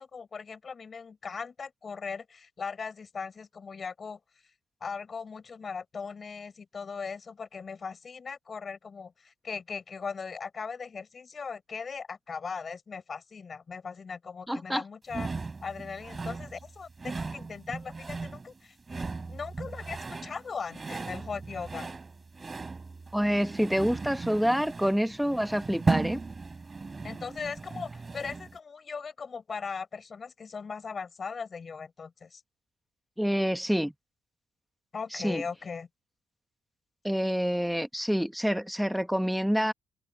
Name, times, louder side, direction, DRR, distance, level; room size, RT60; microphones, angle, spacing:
voice 1, 0.0-4.2 4.8-15.3 15.6-21.9 27.0-32.4 34.9-35.9, left 5 dB, 35° left, 6.5 m, -39 dB
voice 2, 14.5-14.8 23.1-26.2 33.2-33.9 35.1-35.4 37.0-39.7, equal, ahead, 1.3 m, -27 dB
sound 1, 15.1-28.6, right 4 dB, 25° right, 3.6 m, -36 dB
cardioid pair, 145°, 0 cm